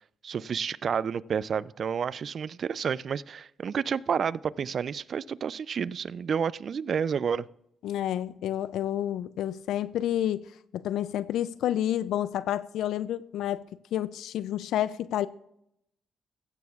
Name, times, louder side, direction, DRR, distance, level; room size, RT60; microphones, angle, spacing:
voice 1, 0.2-7.5, right 7 dB, 50° right, 0.3 m, -30 dB
voice 2, 7.8-10.5 10.7-13.6 13.9-15.3, left 11 dB, 80° left, 0.3 m, -29 dB
15.5 x 14.0 x 2.4 m
cardioid pair, 90°, 0 cm